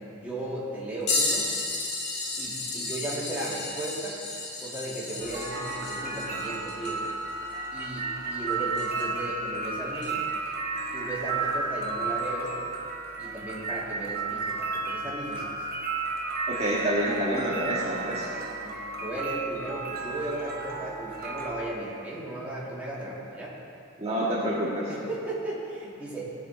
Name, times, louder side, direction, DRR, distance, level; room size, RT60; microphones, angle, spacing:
voice 1, 0.0-1.5 2.4-4.2 4.6-7.0 7.7-10.2 10.9-12.6 13.2-15.6 18.6-23.5 24.9-26.3, right 1 dB, 5° right, -8 dB, 3.0 m, -36 dB
sound 1, 1.1-9.3 10.0-10.1 12.4-12.5 13.5-13.7 14.8-14.9, left 3 dB, 60° left, 1.9 m, -33 dB
sound 2, 5.2-21.5, right 3 dB, 45° right, 1.3 m, -33 dB
voice 2, 16.5-18.2 24.0-24.8, equal, 30° right, -9 dB, 1.8 m, -27 dB
19.0 x 6.7 x 4.5 m, 2.6 s
head